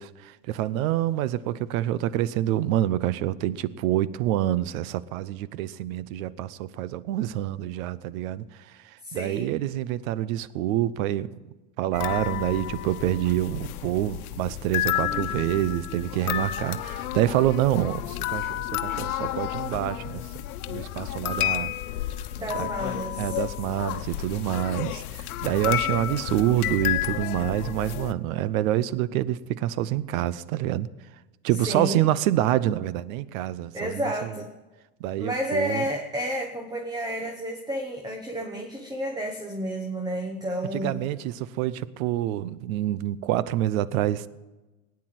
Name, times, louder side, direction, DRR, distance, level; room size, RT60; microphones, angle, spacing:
voice 1, 0.0-11.4 11.8-20.2 20.7-21.7 22.5-22.7 23.2-30.9 31.4-34.3 35.0-35.8 40.7-44.3, right 13 dB, 70° right, 18 dB, 0.8 m, -27 dB
voice 2, 9.0-9.5 22.3-23.4 31.6-32.0 33.7-34.5 35.2-41.0, equal, 10° right, 4 dB, 1.1 m, -31 dB
sound 1, 11.9-28.1, left 14 dB, 85° left, 1.1 m, -31 dB
18.0 x 9.8 x 7.8 m, 1.1 s
supercardioid pair, 135°, 43 cm